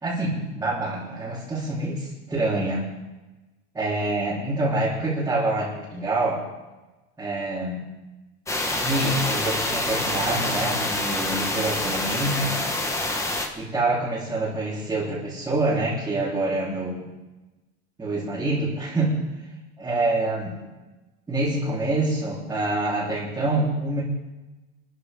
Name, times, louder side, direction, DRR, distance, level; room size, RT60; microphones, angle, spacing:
voice 1, 0.0-2.9 3.7-6.4 7.2-7.8 8.7-12.6 13.6-17.1 18.0-19.2 19.8-20.5 21.3-24.0, right 2 dB, 10° right, -9 dB, 3.9 m, -26 dB
sound 1, 8.5-13.5, left 2 dB, 10° left, 1.2 m, -26 dB
24.0 x 14.0 x 3.7 m, 1.1 s
cardioid pair, 160°, 31 cm